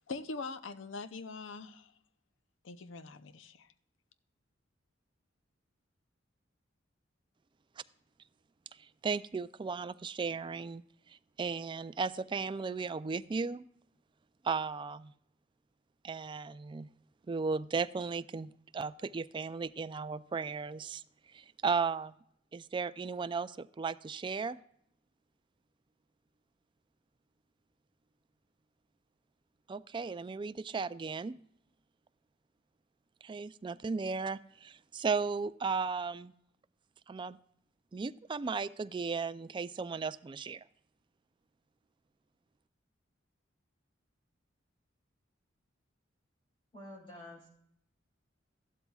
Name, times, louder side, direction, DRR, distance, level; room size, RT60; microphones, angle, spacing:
voice 1, 0.1-1.9 2.6-3.7, left 3 dB, 70° left, 12 dB, 0.6 m, -42 dB
voice 2, 8.8-10.8 11.1-13.7 14.4-15.1 16.0-16.9 17.3-21.0 21.3-22.1 22.5-24.6 29.7-31.4 33.2-36.3 37.1-37.4 37.9-40.6, right 5 dB, 25° right, 14 dB, 0.3 m, -35 dB
voice 3, 46.7-47.5, left 1 dB, 30° left, -4 dB, 3.0 m, -48 dB
14.5 x 12.0 x 2.3 m, 0.71 s
head